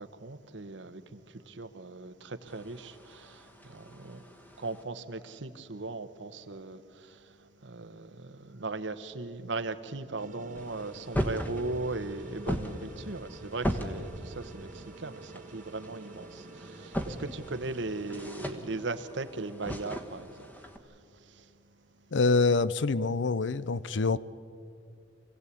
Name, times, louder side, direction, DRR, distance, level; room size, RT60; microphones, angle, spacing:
voice 1, 0.0-4.2 4.6-21.5, right 3 dB, 80° right, 1.1 m, -38 dB
sound 1, 2.5-4.8 10.6-20.8, equal, 10° left, 1.3 m, -38 dB
sound 2, 10.2-18.3, right 2 dB, 45° right, 1.2 m, -49 dB
voice 2, 22.1-24.2, left 3 dB, 80° left, 0.6 m, -25 dB
25.0 x 16.5 x 8.4 m
head